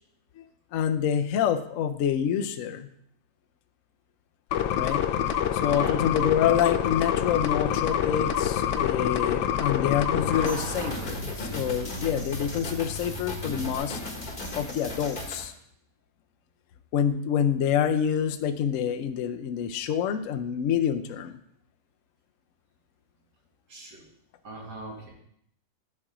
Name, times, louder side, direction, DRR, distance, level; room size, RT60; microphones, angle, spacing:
voice 1, 0.7-2.9 4.7-5.0 5.5-14.0 14.5-15.5 16.9-21.4, left 9 dB, 65° left, 8 dB, 0.8 m, -27 dB
sound 1, 4.5-10.5, left 10 dB, 85° left, 1.2 m, -26 dB
Truck, 6.2-13.8, equal, 50° right, 1.3 m, -39 dB
sound 2, 10.5-15.5, left 2 dB, 35° left, 1.2 m, -37 dB
voice 2, 24.4-25.1, right 1 dB, 80° right, -1 dB, 2.5 m, -39 dB
9.9 x 4.4 x 4.9 m, 0.71 s
omnidirectional pair, 1.8 m